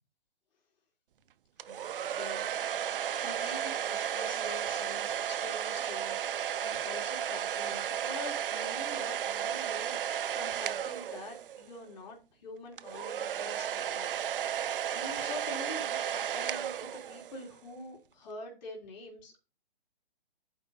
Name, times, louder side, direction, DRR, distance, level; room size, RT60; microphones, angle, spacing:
voice 1, 1.6-2.5 3.2-19.3, left 2 dB, 45° left, -3 dB, 3.1 m, -46 dB
sound 1, 1.6-11.7 12.8-17.5, right 10 dB, 60° right, 0.4 m, -34 dB
10.5 x 4.8 x 2.7 m, 0.32 s
hypercardioid pair, 140°, 30 cm